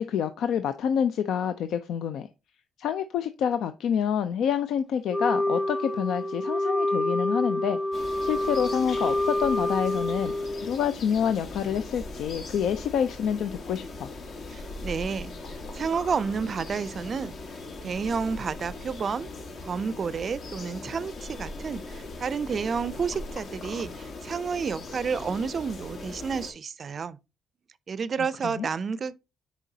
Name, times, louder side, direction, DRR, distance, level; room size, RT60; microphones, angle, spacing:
voice 1, 0.0-2.3 2.8-7.8 8.2-10.4 10.6-14.1 28.2-28.7, left 8 dB, 75° left, 0.4 m, -27 dB
Wind instrument woodwind instrument, 5.1-10.7, left 1 dB, 20° left, 1.1 m, -27 dB
sound 1, 7.9-26.5, left 2 dB, 60° left, 1.3 m, -40 dB
voice 2, 14.5-17.4 17.8-19.3 19.6-27.2 27.9-29.2, right 5 dB, 45° right, 0.4 m, -30 dB
9.8 x 4.2 x 2.7 m
cardioid pair, 90°, 0 cm